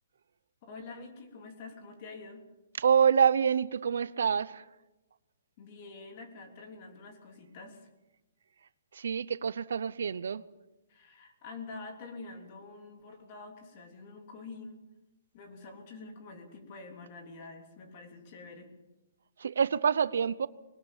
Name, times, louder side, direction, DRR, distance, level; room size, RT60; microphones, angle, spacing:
voice 1, 0.6-2.4 5.6-7.9 10.9-14.8 15.3-18.7, left 3 dB, 30° left, 4 dB, 3.3 m, -47 dB
voice 2, 2.8-4.6 8.9-10.4 19.4-20.5, right 7 dB, 75° right, 17 dB, 0.8 m, -26 dB
21.5 x 18.5 x 7.4 m, 1.0 s
hypercardioid pair, 170°, 0 cm